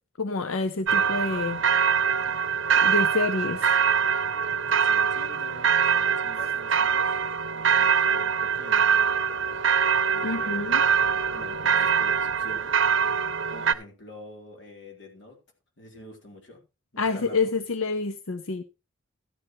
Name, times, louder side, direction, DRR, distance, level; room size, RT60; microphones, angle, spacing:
voice 1, 0.2-1.6 2.8-3.8 10.2-10.8 17.0-18.6, left 3 dB, 90° left, 0.7 m, -28 dB
sound 1, 0.9-13.7, right 7 dB, 65° right, 0.7 m, -23 dB
voice 2, 4.7-7.2 7.5-9.8 10.1-10.7 11.3-12.8 13.5-15.4 15.8-16.6 16.9-17.5, left 1 dB, 60° left, 3.8 m, -46 dB
13.5 x 10.0 x 3.1 m
head